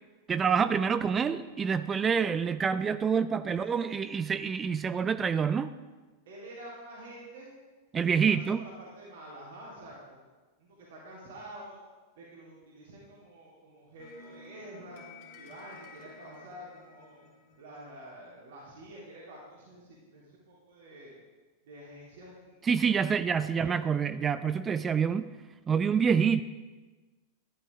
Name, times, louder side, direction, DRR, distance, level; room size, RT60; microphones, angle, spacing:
voice 1, 0.3-5.7 7.9-8.6 22.6-25.3 25.7-26.4, right 6 dB, 20° right, 13 dB, 0.4 m, -27 dB
voice 2, 3.4-3.9 6.2-7.6 7.9-10.2 10.6-11.8 12.1-15.0 15.3-17.2 17.6-21.1 21.6-22.7 23.4-24.1, right 1 dB, 60° right, -5 dB, 3.4 m, -48 dB
sound 1, 14.0-18.3, left 3 dB, 45° left, 2.9 m, -52 dB
13.0 x 11.5 x 3.7 m, 1.3 s
figure-of-eight pair, 90°, 0 cm